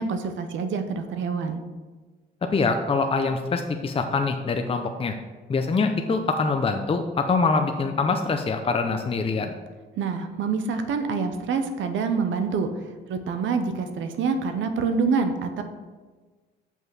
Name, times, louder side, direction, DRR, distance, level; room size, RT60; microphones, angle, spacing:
voice 1, 0.0-1.6 10.0-12.7 13.1-15.6, right 5 dB, 75° right, 7 dB, 0.8 m, -26 dB
voice 2, 2.5-5.1 5.5-9.6, left 4 dB, 30° left, 5 dB, 0.6 m, -24 dB
6.0 x 5.5 x 6.1 m, 1.3 s
cardioid pair, 90°, 20 cm